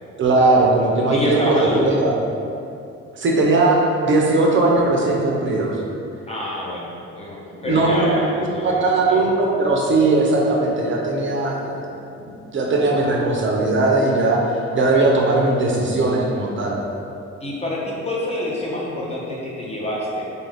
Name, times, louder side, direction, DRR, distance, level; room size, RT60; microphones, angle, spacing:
voice 1, 0.2-2.1 3.2-5.8 7.5-8.1 8.4-11.9 12.2-14.5 14.7-16.8, right 2 dB, 40° right, -2 dB, 0.4 m, -19 dB
voice 2, 1.1-2.0 6.3-9.2 17.4-20.2, left 1 dB, 20° left, -4 dB, 0.4 m, -26 dB
2.3 x 2.1 x 3.3 m, 2.6 s
cardioid pair, 90°, 30 cm